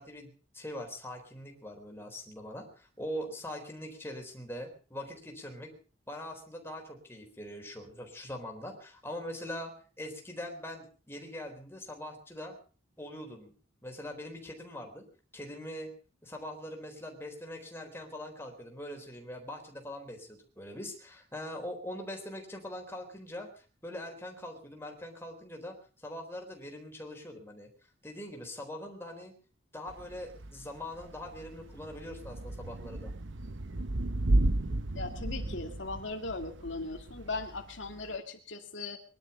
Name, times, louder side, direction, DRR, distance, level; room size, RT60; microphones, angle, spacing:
voice 1, 0.0-5.7 6.1-9.7 10.0-12.5 13.0-13.5 13.8-15.0 15.3-15.9 16.2-27.7 28.0-29.3 29.7-33.1, left 1 dB, 10° left, 2 dB, 3.9 m, -42 dB
Thunder / Rain, 29.9-38.1, right 1 dB, 70° right, 1.0 m, -34 dB
voice 2, 34.9-39.0, left 3 dB, 70° left, 4 dB, 2.2 m, -38 dB
22.5 x 11.5 x 5.5 m, 0.40 s
head